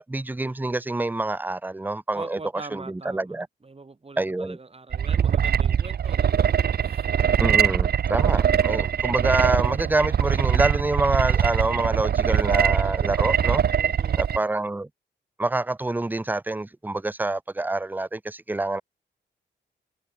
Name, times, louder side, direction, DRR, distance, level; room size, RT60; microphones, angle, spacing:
voice 1, 0.0-2.4 2.7-3.5 4.2-4.6 7.4-13.6 14.2-14.9 15.4-18.8, right 2 dB, 10° right, 0.6 m, -26 dB
voice 2, 2.1-3.4 3.6-7.1 13.7-14.3, right 3 dB, 30° right, 3.9 m, -43 dB
sound 1, 4.9-14.4, right 8 dB, 55° right, 0.7 m, -22 dB
cardioid pair, 85°, 19 cm